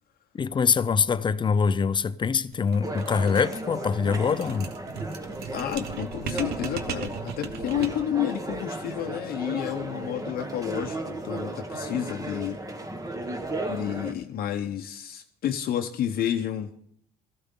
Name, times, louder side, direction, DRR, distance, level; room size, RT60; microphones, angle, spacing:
voice 1, 0.3-4.7, left 5 dB, 30° left, 0.5 m, -24 dB
sound 1, 2.5-8.2, right 6 dB, 70° right, 1.0 m, -38 dB
sound 2, 2.8-14.1, right 2 dB, 20° right, 1.3 m, -35 dB
voice 2, 5.5-12.6 13.7-16.7, left 10 dB, 60° left, 0.8 m, -30 dB
13.5 x 13.5 x 3.8 m
cardioid pair, 110°, 17 cm